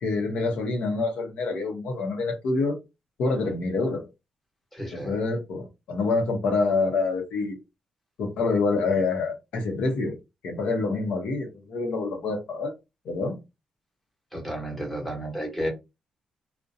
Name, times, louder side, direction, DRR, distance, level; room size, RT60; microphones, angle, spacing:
voice 1, 0.0-2.8 3.2-4.1 4.9-7.6 8.2-10.2 10.4-12.7 13.0-13.4, left 3 dB, 85° left, 0.7 m, -26 dB
voice 2, 4.7-5.1 14.3-15.7, equal, 5° left, 1.0 m, -32 dB
2.5 x 2.1 x 2.6 m
cardioid pair, 125°, 2 cm